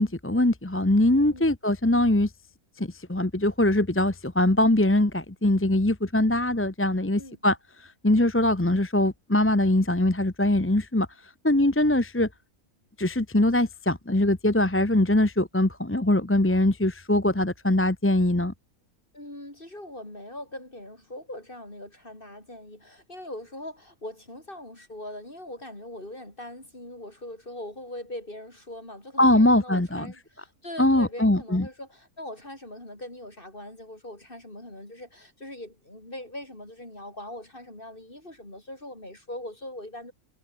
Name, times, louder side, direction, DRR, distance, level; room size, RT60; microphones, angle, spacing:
voice 1, 0.0-2.3 2.8-7.6 8.0-11.1 11.4-12.3 13.0-18.5 29.2-30.1 30.8-31.6, left 1 dB, 10° left, 0.9 m, -22 dB
voice 2, 19.1-40.1, left 1 dB, 35° left, 7.3 m, -41 dB
omnidirectional pair, 1.6 m